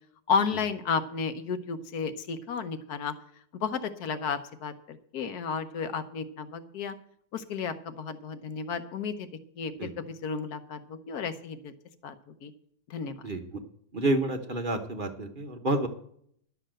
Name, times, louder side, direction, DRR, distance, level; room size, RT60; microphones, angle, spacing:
voice 1, 0.3-3.1 3.5-6.9 7.3-9.3 9.6-11.7 12.0-12.1 12.4-12.5 12.9-13.2, left 5 dB, 55° left, 10 dB, 1.2 m, -32 dB
voice 2, 13.2-13.6 13.9-15.9, right 1 dB, 40° right, 5 dB, 0.7 m, -29 dB
12.0 x 7.0 x 7.6 m, 0.66 s
omnidirectional pair, 2.3 m